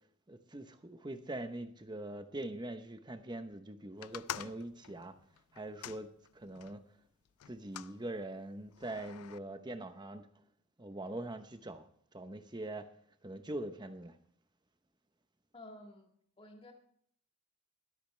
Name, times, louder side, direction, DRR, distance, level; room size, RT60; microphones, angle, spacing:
voice 1, 0.3-5.1 5.5-6.8 7.5-10.3 10.8-11.9 12.1-12.9 13.2-14.2, right 1 dB, 20° right, 0.8 m, -43 dB
sound 1, 4.0-6.8 7.4-8.0 8.7-9.4, left 10 dB, 85° left, 0.4 m, -46 dB
voice 2, 15.5-16.1 16.4-16.7, left 1 dB, 25° left, 2.0 m, -52 dB
22.5 x 8.7 x 3.3 m
head